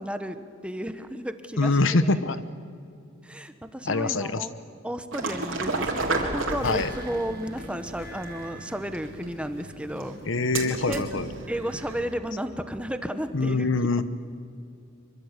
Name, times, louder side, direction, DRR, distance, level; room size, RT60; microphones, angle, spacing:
voice 1, 0.0-2.2 3.2-4.6 4.8-10.2 10.8-13.7, equal, 5° right, 9 dB, 1.1 m, -33 dB
voice 2, 1.6-2.4 3.8-4.5 6.6-6.9 10.2-11.3 13.3-14.0, left 3 dB, 70° left, 13 dB, 1.1 m, -24 dB
sound 1, 5.1-12.1, right 3 dB, 75° right, 3.8 m, -33 dB
sound 2, 6.3-9.8 10.2-10.3, equal, 50° left, 4.4 m, -45 dB
25.5 x 24.5 x 8.3 m, 2.5 s
head